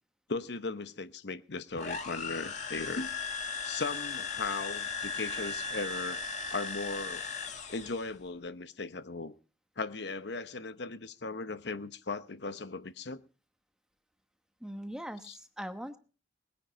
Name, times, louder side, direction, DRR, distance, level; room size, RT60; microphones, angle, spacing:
voice 1, 0.3-3.1 3.6-6.2 6.5-7.3 7.7-9.3 9.8-13.2 15.3-15.4, left 3 dB, 65° left, 0.9 m, -37 dB
sound 1, 1.8-8.1, left 4 dB, 40° left, 1.9 m, -37 dB
voice 2, 14.6-16.0, equal, 5° right, 1.1 m, -41 dB
20.0 x 10.0 x 5.1 m
head